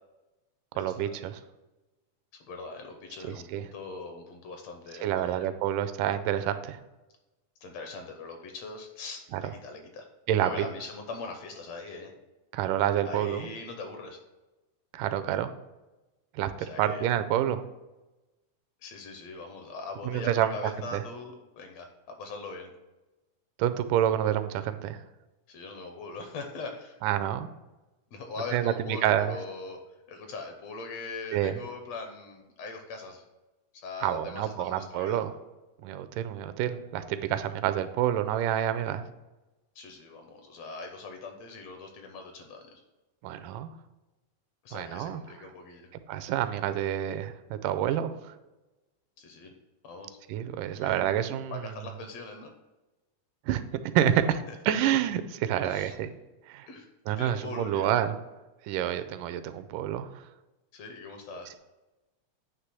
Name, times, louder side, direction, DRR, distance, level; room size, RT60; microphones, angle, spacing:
voice 1, 0.8-1.4 3.5-3.6 5.0-6.8 9.3-9.4 10.3-10.7 12.5-13.5 14.9-15.5 16.3-16.5 16.8-17.6 20.0-21.0 23.6-25.0 27.0-27.5 28.5-29.4 31.3-31.6 34.0-35.3 35.8-39.1 43.2-43.7 44.7-45.2 46.1-48.3 50.3-51.8 53.5-53.6 53.9-56.1 56.5-56.7 57.1-58.2 58.6-60.2, right 11 dB, 90° right, 11 dB, 2.1 m, -28 dB
voice 2, 2.4-5.5 7.6-10.1 10.4-12.1 13.1-14.2 16.7-17.1 18.8-22.7 25.5-27.0 28.1-29.8 30.1-33.2 33.7-35.2 39.8-42.8 44.6-45.9 49.2-49.5 49.8-50.2 50.7-52.5 54.5-54.6 55.6-55.9 56.7-56.9 57.2-57.9 60.7-61.5, left 3 dB, 70° left, 4 dB, 1.7 m, -41 dB
9.6 x 3.3 x 6.0 m, 1.1 s
omnidirectional pair, 3.6 m